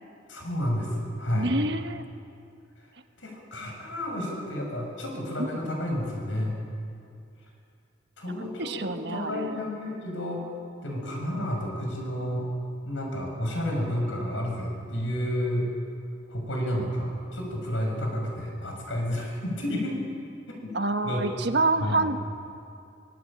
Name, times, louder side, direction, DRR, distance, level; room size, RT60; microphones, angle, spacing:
voice 1, 0.3-1.5 3.2-6.6 8.2-10.4 10.8-12.4 12.8-15.7 16.3-20.0 20.5-20.7 21.0-21.3 21.8-22.0, equal, 85° left, 0 dB, 6.6 m, -31 dB
voice 2, 1.3-2.0 5.4-5.5 8.4-9.6 11.0-11.3 16.8-16.9 20.7-22.2, right 2 dB, 60° right, 7 dB, 1.3 m, -28 dB
24.5 x 20.5 x 8.8 m, 2.5 s
head